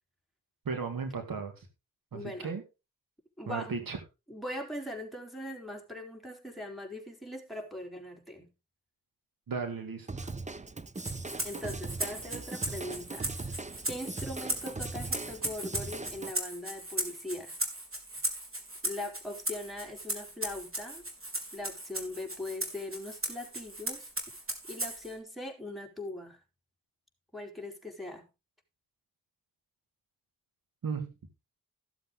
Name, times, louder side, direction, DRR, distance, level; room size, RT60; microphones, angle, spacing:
voice 1, 0.7-1.7 2.1-2.6 3.5-4.0 9.5-10.3 30.8-31.1, right 5 dB, 75° right, 2.3 m, -35 dB
voice 2, 2.1-2.6 3.4-3.9 4.3-8.5 11.4-13.5 13.9-17.6 18.8-21.0 21.5-24.1 24.7-26.4 27.3-28.3, left 1 dB, ahead, 4.1 m, -41 dB
Drum kit / Drum, 10.1-16.3, right 3 dB, 20° right, 0.9 m, -40 dB
Rattle (instrument), 11.0-25.1, right 1 dB, 40° right, 3.8 m, -37 dB
15.0 x 7.5 x 3.8 m
cardioid pair, 60°, 34 cm